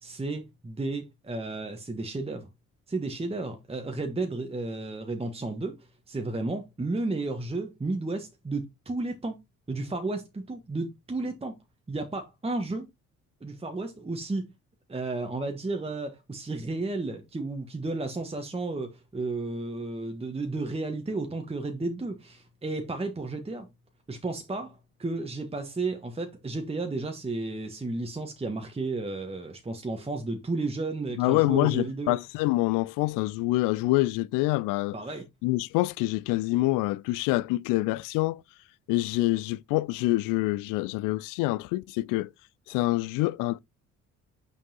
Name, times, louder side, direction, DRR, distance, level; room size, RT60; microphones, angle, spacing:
voice 1, 0.0-2.5 2.9-5.8 6.1-9.4 9.7-11.5 11.9-12.9 13.4-14.5 14.9-23.7 24.1-32.1 34.9-35.2, right 3 dB, 15° right, 1.3 m, -33 dB
voice 2, 31.2-35.0 35.4-38.4 38.9-42.3 42.7-43.6, left 19 dB, 50° left, 0.4 m, -26 dB
6.8 x 5.8 x 2.8 m
figure-of-eight pair, 45°, 41 cm